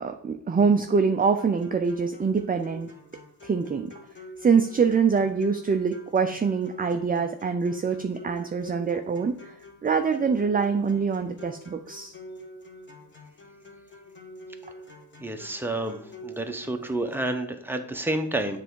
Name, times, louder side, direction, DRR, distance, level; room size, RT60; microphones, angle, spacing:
voice 1, 0.0-2.9 3.4-3.9 4.4-9.5 9.8-12.1, right 5 dB, 25° right, 6 dB, 0.4 m, -24 dB
sound 1, 1.3-17.3, equal, 25° left, 1.4 m, -46 dB
voice 2, 15.2-18.6, right 1 dB, 5° right, 5 dB, 0.7 m, -30 dB
7.7 x 3.4 x 4.6 m, 0.69 s
cardioid pair, 90°, 41 cm